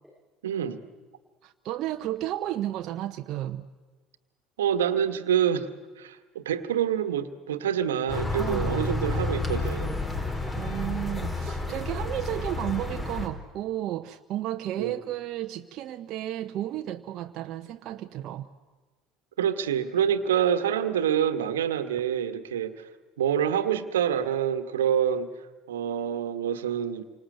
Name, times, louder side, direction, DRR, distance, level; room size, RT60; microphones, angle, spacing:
voice 1, 0.4-0.8 4.6-5.7 6.0-9.9 14.8-15.0 19.4-22.9 23.2-25.3 25.7-27.0, right 9 dB, 80° right, 10 dB, 1.4 m, -26 dB
voice 2, 1.4-3.7 8.4-8.9 10.2-18.5, right 13 dB, 55° right, 7 dB, 0.8 m, -33 dB
sound 1, 8.1-13.3, left 2 dB, 20° left, 4.7 m, -30 dB
29.0 x 25.0 x 8.0 m, 1.3 s
hypercardioid pair, 65°, 0 cm